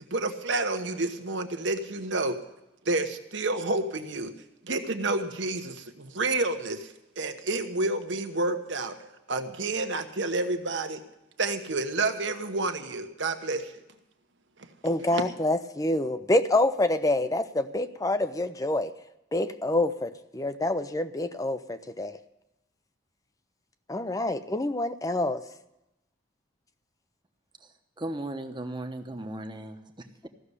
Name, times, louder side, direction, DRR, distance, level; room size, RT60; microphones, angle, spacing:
voice 1, 0.1-2.4 2.8-4.3 4.6-6.9 7.2-9.0 9.3-11.0 11.4-13.7 15.1-15.2, right 2 dB, 70° right, 7 dB, 1.1 m, -29 dB
voice 2, 14.8-18.9 19.3-22.2 23.9-25.4, left 1 dB, 20° left, 11 dB, 0.5 m, -27 dB
voice 3, 28.0-30.3, right 1 dB, 25° right, 6 dB, 1.0 m, -37 dB
15.0 x 6.7 x 9.8 m, 0.90 s
head